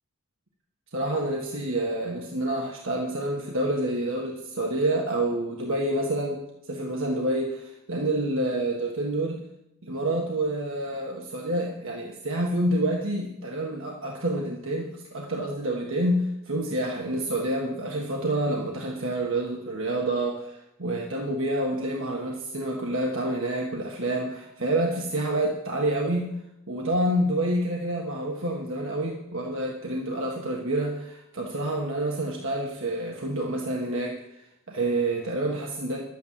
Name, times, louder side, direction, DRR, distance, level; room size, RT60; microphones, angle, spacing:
voice 1, 0.9-6.4 6.7-9.4 9.8-26.3 26.7-36.0, right 1 dB, 65° right, 0 dB, 1.6 m, -28 dB
11.5 x 9.3 x 7.5 m, 0.86 s
head